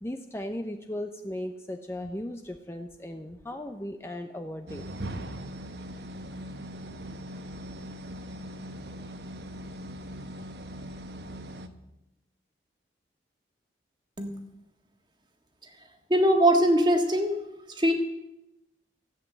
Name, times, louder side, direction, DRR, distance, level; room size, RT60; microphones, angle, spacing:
voice 1, 0.0-4.9, left 1 dB, 15° left, 5 dB, 0.6 m, -37 dB
sound 1, 4.7-11.7, equal, 65° right, 1.0 m, -40 dB
voice 2, 16.1-17.4 17.7-17.9, right 1 dB, 25° right, 4 dB, 1.6 m, -22 dB
15.5 x 8.3 x 8.0 m, 0.92 s
head